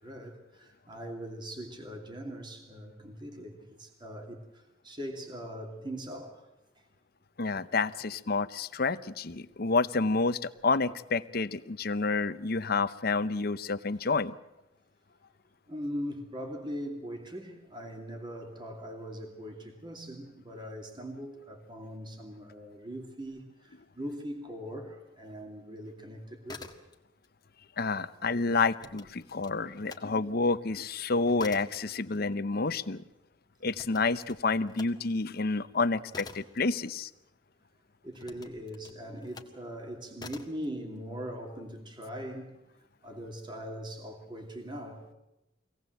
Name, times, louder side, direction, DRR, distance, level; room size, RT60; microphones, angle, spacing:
voice 1, 0.0-6.5 14.0-14.1 15.7-26.7 38.0-42.6 43.0-45.1, equal, 25° right, 2.7 m, -41 dB
voice 2, 7.4-14.3 27.8-33.0 33.6-37.1, left 3 dB, 55° left, 0.8 m, -29 dB
sound 1, 26.5-27.3 27.6-30.1 30.5-37.5 38.1-39.6 40.2-40.7, left 3 dB, 20° left, 1.8 m, -48 dB
24.5 x 18.0 x 7.8 m
head